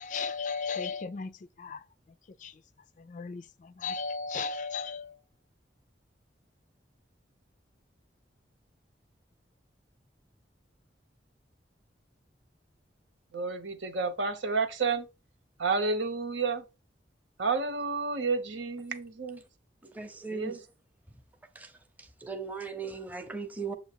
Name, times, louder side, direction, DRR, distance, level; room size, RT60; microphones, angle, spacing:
voice 1, 0.0-1.8 2.4-2.5 3.0-5.2, left 4 dB, 40° left, 0.3 m, -35 dB
voice 2, 13.3-15.1 15.6-16.6 17.4-19.4 20.3-20.6, right 4 dB, 85° right, 0.9 m, -30 dB
voice 3, 19.8-20.6 21.5-21.7 22.0-23.7, right 4 dB, 10° right, 0.7 m, -38 dB
7.5 x 2.7 x 5.0 m
head